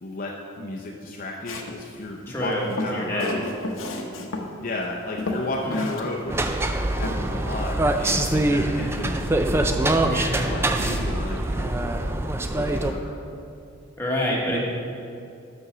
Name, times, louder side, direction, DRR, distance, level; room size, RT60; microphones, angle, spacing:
voice 1, 0.0-3.5 4.6-6.5 6.8-9.2 10.4-11.8 12.5-13.2 14.5-14.6, left 2 dB, 45° left, -1 dB, 0.6 m, -33 dB
Walk footsteps, 1.5-1.8 2.5-4.5 4.8-4.9 5.2-6.0 6.3-6.4 7.0-7.2, left 2 dB, 75° left, 0.8 m, -31 dB
voice 2, 2.3-3.3 5.6-5.8 10.0-10.4 14.0-14.6, equal, 10° left, -4 dB, 1.3 m, -27 dB
sound 1, 5.5-11.9, right 2 dB, 85° right, 0.4 m, -41 dB
sound 2, 6.3-12.9, right 1 dB, 10° right, 0.3 m, -24 dB
6.7 x 6.1 x 6.0 m, 2.5 s
head